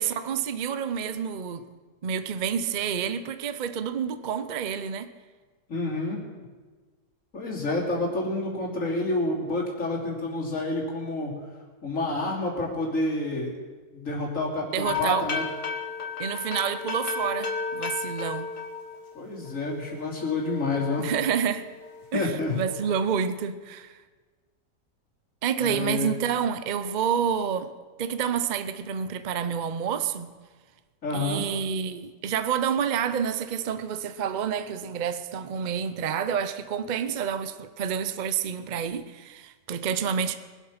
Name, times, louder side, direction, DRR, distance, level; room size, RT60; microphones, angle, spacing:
voice 1, 0.0-1.7 2.0-5.1 14.7-15.3 16.2-18.5 21.0-21.7 22.1-24.0 25.4-27.7 28.0-30.3 31.1-40.3, right 7 dB, 75° right, 0.4 m, -28 dB
voice 2, 5.7-6.2 7.3-11.3 11.8-13.5 13.9-15.4 19.1-21.1 22.1-22.6 25.6-26.1 31.0-31.5, left 2 dB, 45° left, 3.4 m, -29 dB
sound 1, 14.8-19.6 20.0-22.0 22.5-23.1, left 5 dB, 65° left, 2.1 m, -34 dB
22.5 x 8.3 x 5.9 m
omnidirectional pair, 1.9 m